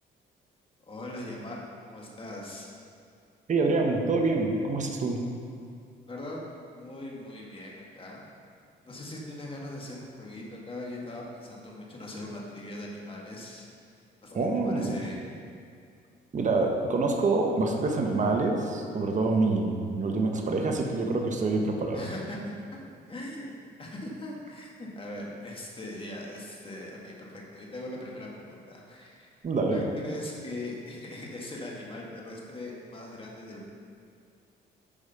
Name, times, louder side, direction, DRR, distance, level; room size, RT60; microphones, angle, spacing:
voice 1, 0.9-2.7 6.1-6.4 6.7-8.2 8.8-13.7 14.2-15.3 21.9-22.4 23.1-23.5 23.8-29.3 29.7-33.6, left 1 dB, 25° left, -3 dB, 1.8 m, -40 dB
voice 2, 3.5-5.2 14.3-15.0 16.3-22.0 29.4-29.8, right 3 dB, 40° right, 2 dB, 1.0 m, -26 dB
8.7 x 4.9 x 5.6 m, 2.3 s
cardioid pair, 90°, 20 cm